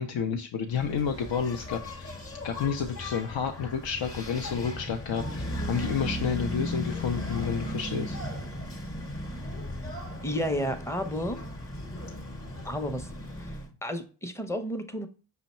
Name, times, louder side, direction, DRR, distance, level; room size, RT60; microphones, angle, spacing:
voice 1, 0.0-2.1 2.4-8.2, left 7 dB, 65° left, 0.6 m, -30 dB
Engine, 0.7-13.7, left 1 dB, 30° left, 0.9 m, -36 dB
voice 2, 10.2-11.4 12.6-13.1 13.4-13.5 13.8-15.1, equal, 5° left, 0.6 m, -31 dB
5.5 x 2.1 x 4.1 m
cardioid pair, 45°, 48 cm